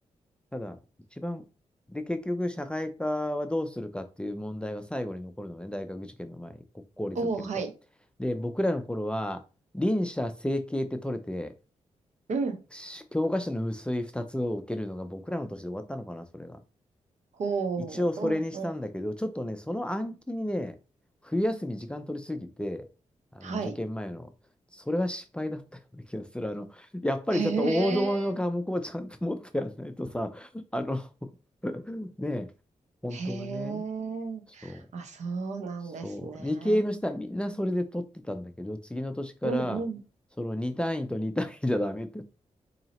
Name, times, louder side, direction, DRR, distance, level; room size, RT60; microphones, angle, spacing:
voice 1, 1.9-6.6 7.0-7.2 8.2-9.4 9.7-11.5 12.7-16.6 17.9-20.8 21.2-22.9 23.3-24.3 24.7-25.6 26.1-31.1 31.6-32.5 33.0-33.8 34.6-34.9 36.0-39.8 40.4-42.2, left 1 dB, 10° left, 0.4 m, -31 dB
voice 2, 7.1-7.7 12.3-12.6 17.4-18.7 23.4-23.8 27.3-28.2 33.1-36.8 39.4-40.0, right 4 dB, 70° right, 0.8 m, -33 dB
4.0 x 2.8 x 2.9 m
cardioid pair, 90°, 13 cm